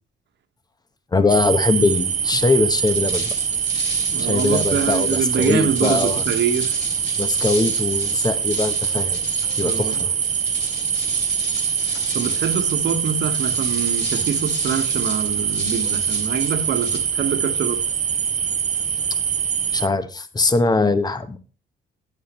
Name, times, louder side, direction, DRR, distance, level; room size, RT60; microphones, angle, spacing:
voice 1, 1.1-3.3 4.2-6.2 7.2-9.2 9.6-10.1 19.7-21.4, left 3 dB, 20° left, 1.0 m, -21 dB
sound 1, 1.3-19.9, right 7 dB, 40° right, 0.7 m, -23 dB
sound 2, 2.7-17.6, left 4 dB, 60° left, 3.1 m, -36 dB
voice 2, 4.1-6.7 9.6-10.0 12.1-17.8, right 7 dB, 60° right, 1.4 m, -25 dB
12.0 x 8.8 x 3.1 m
cardioid pair, 90°, 20 cm